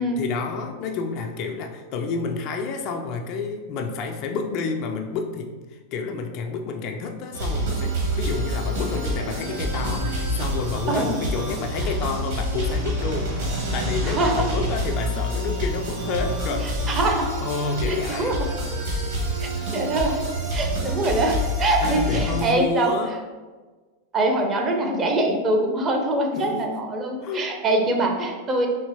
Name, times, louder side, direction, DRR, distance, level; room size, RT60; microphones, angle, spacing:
voice 1, 0.2-13.5 13.7-16.7 17.4-18.4 21.8-23.1 26.3-26.7 27.2-27.4, left 4 dB, 40° left, 4 dB, 0.3 m, -29 dB
sound 1, 7.3-22.5, equal, 55° right, 1.0 m, -27 dB
voice 2, 10.9-11.2 11.8-11.9 14.0-14.5 16.6-17.2 17.9-18.4 19.4-20.2 20.5-22.9 24.1-28.7, right 2 dB, 25° right, 2 dB, 0.5 m, -24 dB
3.3 x 2.9 x 2.6 m, 1.3 s
figure-of-eight pair, 90°, 0 cm